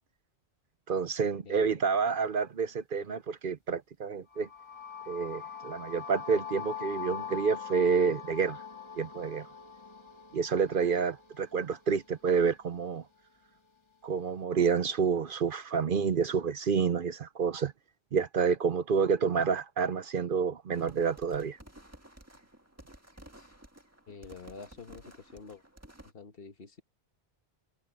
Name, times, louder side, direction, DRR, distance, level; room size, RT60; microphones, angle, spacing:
voice 1, 0.9-4.5 5.1-8.6 9.0-9.5 10.3-13.0 14.0-17.7 18.1-21.6, right 6 dB, 55° right, 0.9 m, -29 dB
sound 1, 4.3-12.2, left 7 dB, 25° left, 2.0 m, -43 dB
sound 2, 20.7-26.1, right 1 dB, 15° right, 1.7 m, -54 dB
voice 2, 24.1-25.6 26.1-26.8, left 5 dB, 60° left, 1.5 m, -47 dB
omnidirectional pair, 1.1 m